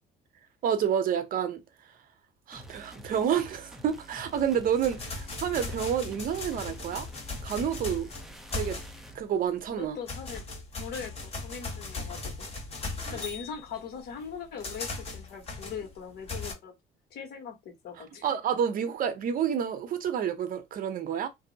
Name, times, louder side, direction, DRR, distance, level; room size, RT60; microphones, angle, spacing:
voice 1, 0.6-1.6 2.5-7.1 7.4-8.1 8.5-8.8 9.1-10.0 13.0-13.2 18.2-21.3, right 8 dB, 55° right, 0.7 m, -29 dB
sound 1, 2.5-9.2, right 1 dB, ahead, 0.6 m, -48 dB
sound 2, 4.4-9.2 9.6-16.5, left 3 dB, 35° left, 1.2 m, -38 dB
voice 2, 9.8-10.4 10.8-12.5 13.1-16.7 17.1-18.4, left 6 dB, 70° left, 1.3 m, -40 dB
2.7 x 2.0 x 3.9 m
cardioid pair, 110°, 17 cm